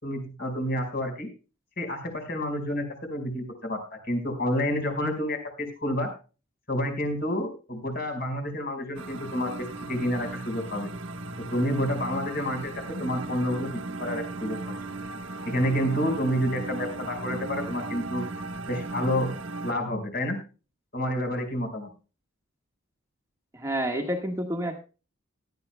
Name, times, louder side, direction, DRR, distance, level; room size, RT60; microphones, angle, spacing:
voice 1, 0.0-1.3 1.8-6.1 6.7-10.9 11.4-12.7 13.0-14.6 15.4-18.3 18.7-19.3 19.6-20.4 20.9-21.9, equal, 45° left, 4 dB, 4.8 m, -29 dB
sound 1, 9.0-19.7, right 3 dB, 60° right, 1.2 m, -36 dB
voice 2, 23.5-24.8, right 1 dB, 15° right, 3 dB, 1.5 m, -29 dB
18.0 x 12.0 x 2.2 m, 0.33 s
head